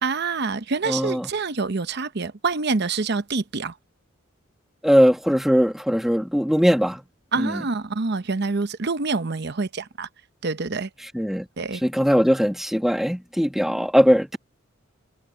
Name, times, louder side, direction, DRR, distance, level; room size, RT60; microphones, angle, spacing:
voice 1, 0.0-3.7 7.3-10.1 10.4-10.9 11.6-11.8, right 4 dB, 55° right, 0.8 m, -26 dB
voice 2, 0.9-1.3 4.8-7.0 7.4-7.6 11.1-11.4 11.8-14.4, equal, ahead, 1.5 m, -20 dB
head